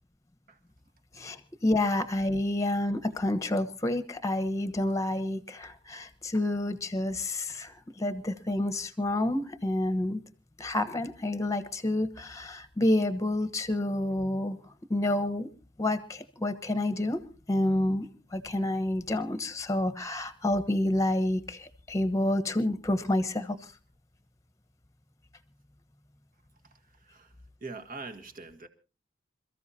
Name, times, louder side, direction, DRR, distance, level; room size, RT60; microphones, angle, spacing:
voice 1, 1.1-10.2 10.6-14.6 14.9-15.5 15.8-17.2 17.5-23.6, left 1 dB, 15° left, 11 dB, 1.1 m, -29 dB
voice 2, 27.6-28.7, right 3 dB, 45° right, 5 dB, 1.7 m, -42 dB
27.5 x 14.0 x 2.8 m, 0.34 s
head